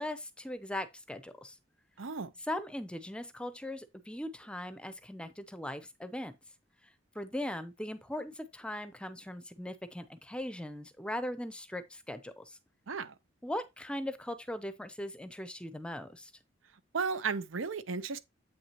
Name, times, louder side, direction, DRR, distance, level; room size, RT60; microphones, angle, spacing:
voice 1, 0.0-1.6 2.5-6.3 7.1-12.6 13.4-16.3, left 1 dB, 5° left, 0.6 m, -39 dB
voice 2, 2.0-2.3 12.9-13.1 16.9-18.2, right 5 dB, 80° right, 0.8 m, -34 dB
8.0 x 6.0 x 2.9 m
head